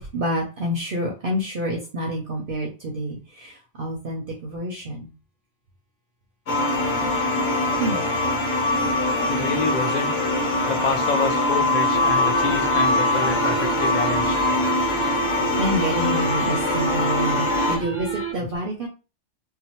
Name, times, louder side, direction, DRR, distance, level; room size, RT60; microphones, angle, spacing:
voice 1, 0.0-5.1 7.8-8.0 15.6-18.9, equal, 60° right, 0 dB, 0.7 m, -28 dB
sound 1, 6.5-17.8, left 2 dB, 80° left, 1.2 m, -22 dB
voice 2, 9.3-10.2 10.7-14.3, left 4 dB, 50° left, 4 dB, 0.6 m, -28 dB
sound 2, 11.9-18.3, right 5 dB, 15° left, 0.7 m, -30 dB
2.8 x 2.1 x 2.8 m, 0.31 s
omnidirectional pair, 1.2 m